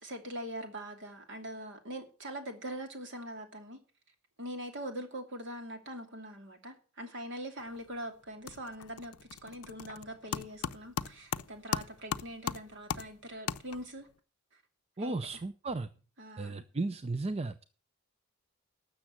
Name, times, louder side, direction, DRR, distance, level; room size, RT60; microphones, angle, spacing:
voice 1, 0.0-3.8 4.4-9.1 9.4-14.1 15.0-15.4 16.2-16.6, equal, 55° right, 2.7 m, -42 dB
sound 1, 7.6-8.0 8.2-14.1, left 7 dB, 80° left, 0.6 m, -39 dB
voice 2, 15.0-15.9 16.4-17.6, right 2 dB, 25° right, 0.5 m, -35 dB
12.5 x 7.2 x 7.6 m
head